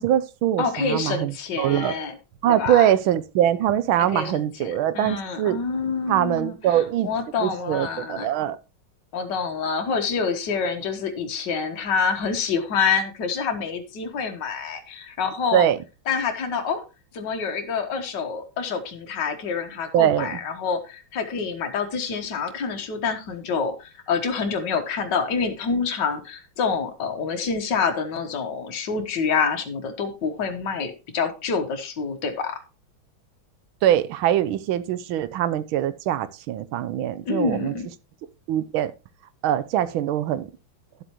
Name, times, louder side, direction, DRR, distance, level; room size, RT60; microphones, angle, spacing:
voice 1, 0.0-2.0 2.4-5.6 6.1-7.1 7.4-8.6 15.5-15.8 19.9-20.4 33.8-37.7 38.5-38.9 39.4-40.5, right 11 dB, 85° right, 1.5 m, -22 dB
voice 2, 0.6-2.1 2.5-2.9 4.0-8.3 9.1-15.7 16.1-16.8 17.1-32.6 37.3-37.9, left 5 dB, 60° left, 1.9 m, -27 dB
12.0 x 7.6 x 3.0 m
omnidirectional pair, 2.2 m